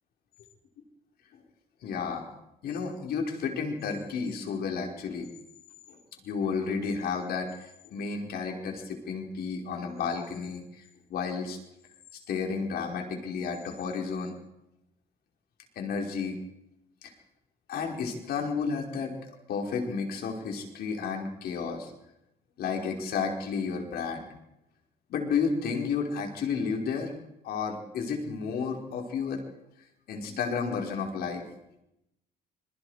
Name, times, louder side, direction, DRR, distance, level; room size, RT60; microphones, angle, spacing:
voice 1, 1.8-2.3 2.6-5.3 5.9-6.0 6.2-10.8 11.1-11.6 12.3-14.4 15.7-16.4 17.0-17.1 17.7-21.9 22.6-24.3 25.1-27.1 27.4-29.5 30.1-31.4, left 5 dB, 65° left, 2 dB, 5.1 m, -32 dB
26.0 x 22.0 x 5.0 m, 0.85 s
cardioid pair, 110°, 17 cm